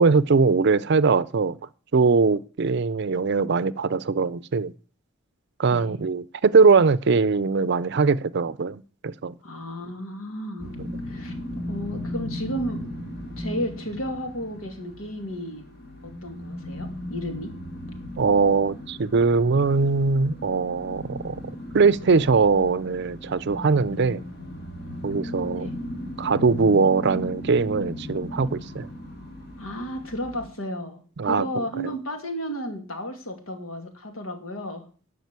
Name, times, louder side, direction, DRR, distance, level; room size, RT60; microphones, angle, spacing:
voice 1, 0.0-1.6 1.9-4.7 5.6-9.3 10.8-11.0 18.2-21.4 21.7-24.2 25.0-25.7 26.2-28.9 31.2-31.6, right 4 dB, 55° right, 0.5 m, -21 dB
voice 2, 9.4-10.8 11.0-11.4 11.6-12.9 13.4-15.6 16.0-17.5 25.5-25.7 29.6-34.9, equal, 90° left, 2.3 m, -33 dB
sound 1, 10.6-30.5, left 1 dB, 50° left, 2.6 m, -37 dB
12.0 x 5.0 x 8.2 m
head